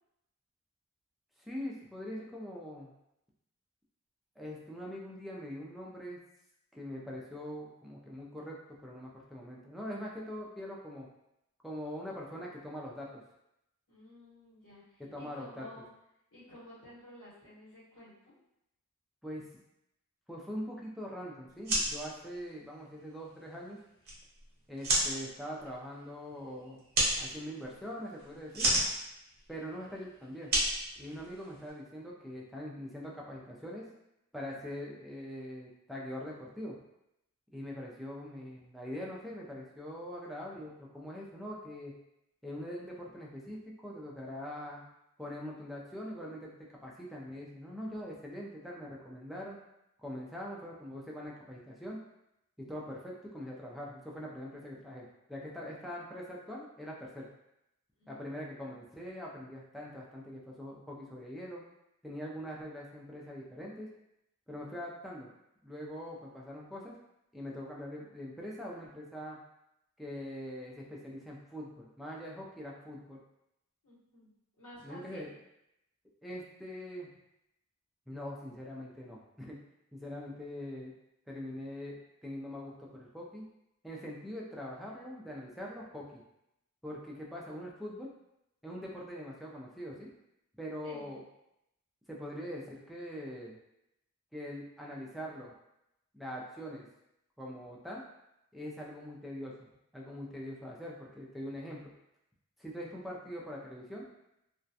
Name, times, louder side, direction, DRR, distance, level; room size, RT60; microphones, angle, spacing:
voice 1, 1.4-2.9 4.4-6.2 6.7-11.1 11.6-13.2 15.0-15.7 19.2-19.5 20.3-23.8 24.7-26.8 27.2-28.7 29.5-30.5 31.0-33.8 34.3-36.8 37.5-41.9 42.4-44.9 45.2-49.6 50.0-52.0 52.6-57.3 58.1-61.6 62.0-63.9 64.5-65.3 65.6-67.0 67.3-69.4 70.0-73.2 74.8-75.3 76.2-77.1 78.1-79.6 79.9-80.9 81.3-83.5 83.8-86.2 86.8-88.1 88.6-90.1 90.6-91.2 92.1-93.6 94.3-95.5 96.1-96.9 97.4-98.0 98.5-99.7 99.9-101.9 102.6-104.0, equal, ahead, -4 dB, 0.3 m, -43 dB
voice 2, 13.9-15.9 16.3-18.3 58.0-58.5 73.8-74.3 74.6-75.2 90.8-91.0, left 1 dB, 85° left, -11 dB, 1.1 m, -53 dB
sound 1, 21.5-31.7, right 1 dB, 45° right, 0.7 m, -34 dB
2.3 x 2.1 x 2.6 m, 0.84 s
head